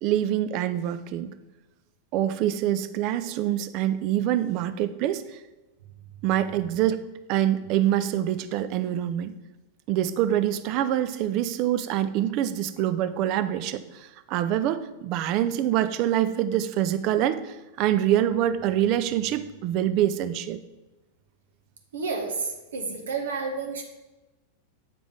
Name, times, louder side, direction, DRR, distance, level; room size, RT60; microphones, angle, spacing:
voice 1, 0.0-1.3 2.1-5.2 6.2-7.0 7.3-9.3 9.9-20.6, right 11 dB, 40° right, 12 dB, 0.4 m, -25 dB
voice 2, 21.9-23.8, right 4 dB, 65° right, 3 dB, 0.9 m, -30 dB
7.4 x 5.0 x 3.7 m, 1.1 s
figure-of-eight pair, 90°, 0 cm